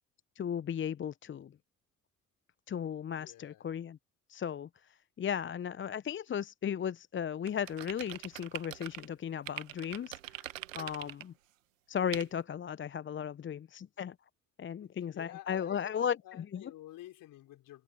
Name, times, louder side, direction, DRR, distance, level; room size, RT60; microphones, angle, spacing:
voice 1, 0.4-1.5 2.7-4.0 4.3-4.7 5.2-10.5 10.7-11.3 11.9-14.1 14.6-16.6, left 8 dB, 30° left, 0.9 m, -36 dB
voice 2, 3.1-3.7 14.8-17.8, left 15 dB, 55° left, 4.3 m, -51 dB
sound 1, 7.5-9.1 9.5-11.2 12.1-12.3, right 14 dB, 75° right, 1.7 m, -43 dB
figure-of-eight pair, 55°, 39 cm